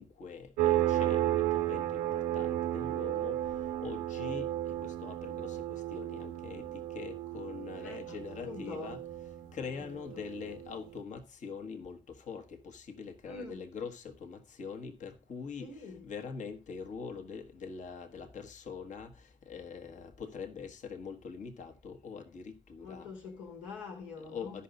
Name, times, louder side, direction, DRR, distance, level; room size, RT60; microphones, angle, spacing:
voice 1, 0.0-3.4 3.6-9.0 9.5-23.1 24.2-24.6, left 5 dB, 55° left, 1.3 m, -43 dB
sound 1, 0.6-10.9, right 13 dB, 75° right, 0.8 m, -33 dB
voice 2, 7.8-8.9 9.8-10.0 13.2-13.6 15.6-16.0 22.8-24.6, left 4 dB, 80° left, 1.8 m, -45 dB
12.5 x 5.6 x 5.1 m
hypercardioid pair, 40°, 15 cm